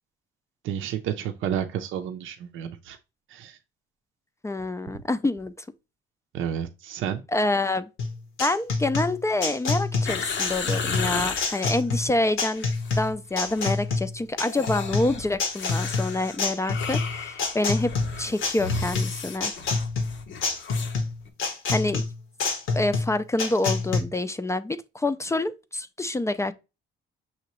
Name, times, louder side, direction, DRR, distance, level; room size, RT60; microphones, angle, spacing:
voice 1, 0.6-3.0 3.3-3.6 6.3-7.2, right 9 dB, 85° right, 0.5 m, -31 dB
voice 2, 4.4-5.5 7.3-7.9 8.4-12.7 13.0-17.9 18.2-19.5 21.7-22.0 22.7-26.5, left 2 dB, 15° left, 0.3 m, -27 dB
sound 1, 8.0-24.0, left 4 dB, 85° left, 1.2 m, -27 dB
sound 2, 10.0-11.7 12.5-13.1 13.4-13.8 14.4-21.0 21.3-21.4, left 5 dB, 70° left, 0.8 m, -34 dB
5.9 x 2.8 x 3.0 m
cardioid pair, 90°, 20 cm